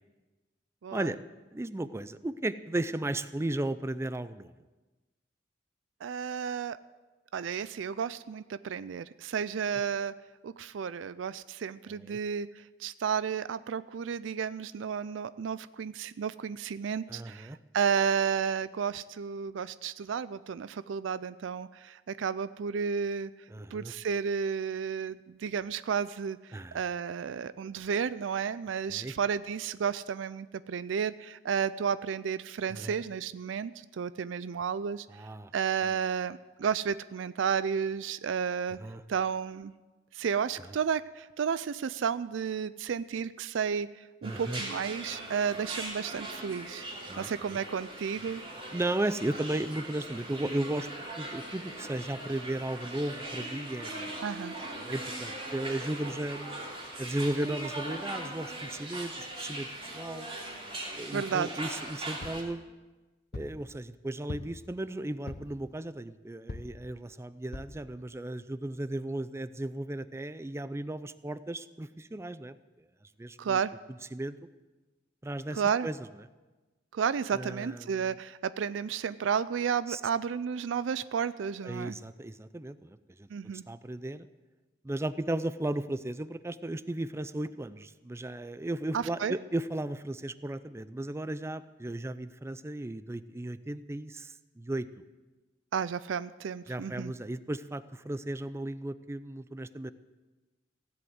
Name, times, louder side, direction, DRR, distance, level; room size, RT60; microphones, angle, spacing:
voice 1, 1.5-4.5 11.9-12.2 17.1-17.6 23.5-23.9 26.5-26.8 28.9-29.1 32.7-33.0 35.1-35.5 35.8-36.0 38.8-39.0 44.2-44.6 47.1-47.6 48.7-50.9 51.2-54.2 54.7-56.6 57.0-60.3 60.9-62.7 63.3-72.6 73.2-73.6 74.1-74.4 75.2-76.0 77.3-78.1 79.9-80.0 81.6-83.3 83.7-84.3 84.8-94.9 96.7-99.9, right 1 dB, 15° right, 15 dB, 0.4 m, -35 dB
voice 2, 6.0-6.8 7.3-10.1 10.4-12.5 12.8-23.3 23.7-26.4 26.7-35.1 35.5-38.8 39.1-39.7 40.1-43.9 44.2-46.8 47.2-48.4 54.2-54.5 61.1-61.5 73.4-73.7 75.5-75.9 76.9-81.9 83.3-83.6 88.9-89.4 95.7-97.1, right 7 dB, 80° right, 16 dB, 0.4 m, -32 dB
sound 1, 44.2-62.4, right 1 dB, 30° right, 2.9 m, -40 dB
sound 2, 62.2-62.5 63.3-63.6 64.3-64.7 65.3-65.6 66.5-66.8 67.5-67.8 68.4-68.5 68.7-68.8, left 2 dB, 60° left, 0.8 m, -41 dB
16.0 x 7.9 x 7.9 m, 1.2 s
head